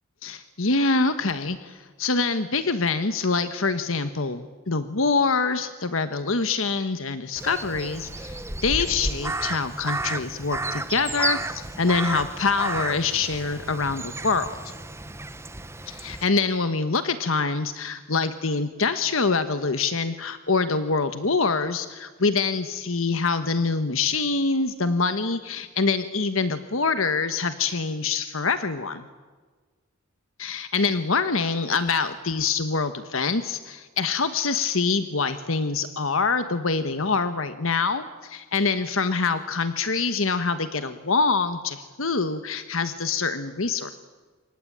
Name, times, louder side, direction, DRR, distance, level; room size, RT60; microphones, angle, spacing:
voice 1, 0.2-14.5 15.9-29.1 30.4-43.9, left 4 dB, 70° left, 10 dB, 1.4 m, -25 dB
Crow, 7.4-16.2, right 2 dB, 15° right, 1.2 m, -32 dB
27.5 x 24.0 x 8.9 m, 1.4 s
head